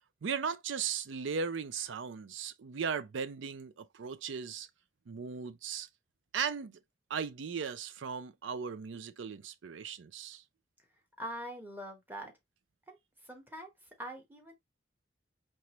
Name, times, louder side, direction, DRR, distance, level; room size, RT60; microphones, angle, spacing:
voice 1, 0.2-4.7 5.1-5.9 6.3-6.8 7.1-10.4, right 6 dB, 75° right, 0.5 m, -37 dB
voice 2, 11.2-12.3 12.9-14.5, equal, 10° right, 0.9 m, -44 dB
4.6 x 3.0 x 2.9 m
head